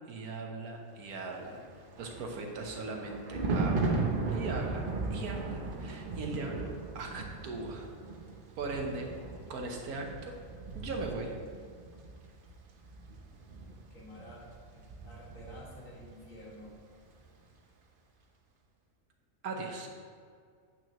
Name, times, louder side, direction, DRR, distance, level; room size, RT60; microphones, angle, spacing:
voice 1, 0.0-1.6 2.0-4.0 4.3-7.9 8.5-9.1 9.5-10.4 10.7-11.3 19.4-19.9, right 3 dB, 85° right, 2 dB, 1.6 m, -39 dB
Thunder, 1.6-16.1 16.4-16.7, right 3 dB, 45° right, 0.9 m, -37 dB
voice 2, 13.9-14.5 15.1-16.7, equal, 65° left, -5 dB, 2.4 m, -49 dB
9.1 x 9.0 x 3.0 m, 2.2 s
omnidirectional pair, 1.5 m